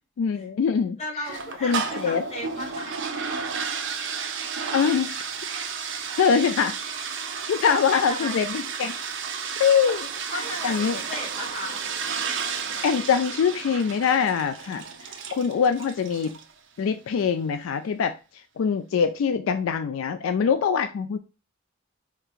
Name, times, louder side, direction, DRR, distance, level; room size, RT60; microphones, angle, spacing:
voice 1, 0.2-1.0 1.6-2.2 4.7-5.2 6.2-6.7 7.5-8.9 9.6-10.1 10.6-11.0 12.8-14.8 15.3-16.4 16.8-18.2 18.6-21.2, left 6 dB, 80° left, 9 dB, 0.3 m, -23 dB
voice 2, 1.0-3.1 7.6-8.4 10.3-11.8, equal, 35° left, -1 dB, 1.4 m, -35 dB
sound 1, 1.2-16.5, right 6 dB, 65° right, 0.6 m, -32 dB
4.5 x 2.8 x 2.4 m, 0.32 s
head